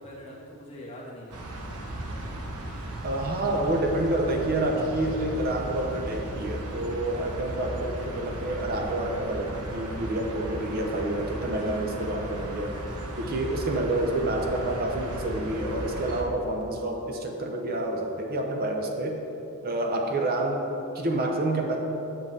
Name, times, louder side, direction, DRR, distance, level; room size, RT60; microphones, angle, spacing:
voice 1, 0.0-2.8, equal, 30° left, -5 dB, 1.4 m, -45 dB
sound 1, 1.3-16.2, right 1 dB, 85° right, 0.9 m, -36 dB
sound 2, 2.2-4.9 5.9-6.0 6.8-6.9 7.3-10.2 11.1-11.2 12.1-12.2 12.6-12.7 12.9-15.6 16.6-16.7, right 1 dB, 5° right, 0.7 m, -46 dB
voice 2, 3.0-12.8 13.2-19.2 19.6-21.8, right 1 dB, 45° right, 2 dB, 0.6 m, -28 dB
7.6 x 7.4 x 3.2 m, 2.9 s
head